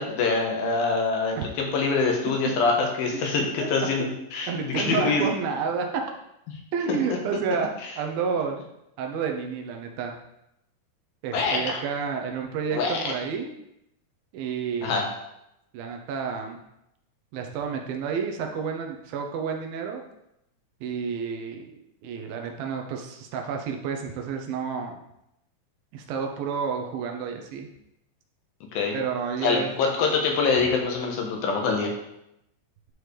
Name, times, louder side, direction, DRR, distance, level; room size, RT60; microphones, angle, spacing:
voice 1, 0.0-5.2 6.9-7.0 7.8-7.9 11.3-11.8 12.7-13.1 14.8-15.0 28.7-28.9 29.4-31.9, left 4 dB, 75° left, 1 dB, 2.8 m, -25 dB
voice 2, 4.5-6.0 6.7-8.6 9.0-10.1 11.2-13.5 14.3-14.9 15.7-16.6 17.3-20.0 20.8-21.7 22.0-25.0 25.9-27.7 28.9-29.7 30.6-30.7, right 6 dB, 75° right, 3 dB, 2.5 m, -30 dB
11.0 x 4.7 x 3.3 m, 0.83 s
omnidirectional pair, 4.4 m